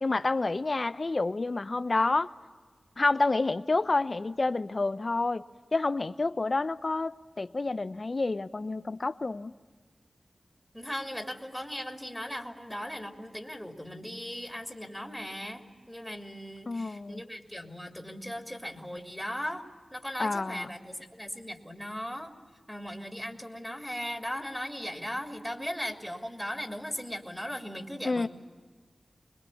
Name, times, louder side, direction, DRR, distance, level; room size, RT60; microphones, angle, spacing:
voice 1, 0.0-2.3 3.0-5.4 5.7-9.5 16.7-17.2 20.2-20.7 28.0-28.3, left 3 dB, 50° left, 13 dB, 0.8 m, -29 dB
voice 2, 10.7-19.6 19.9-22.3 22.7-28.3, equal, ahead, 2 dB, 3.1 m, -38 dB
25.0 x 21.0 x 8.6 m, 1.5 s
cardioid pair, 45°, 0 cm